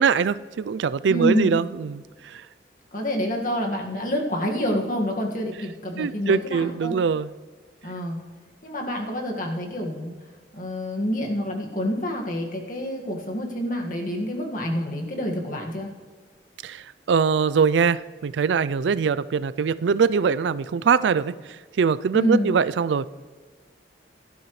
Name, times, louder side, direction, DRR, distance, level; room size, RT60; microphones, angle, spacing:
voice 1, 0.0-2.0 2.3-2.4 6.0-7.3 16.6-21.3 21.8-23.1, right 6 dB, 85° right, 16 dB, 0.4 m, -22 dB
voice 2, 1.1-1.6 2.9-7.0 7.8-8.2 8.6-10.1 10.5-15.9 22.1-22.5, equal, 50° left, 1 dB, 1.8 m, -27 dB
17.0 x 12.0 x 3.2 m, 1.5 s
head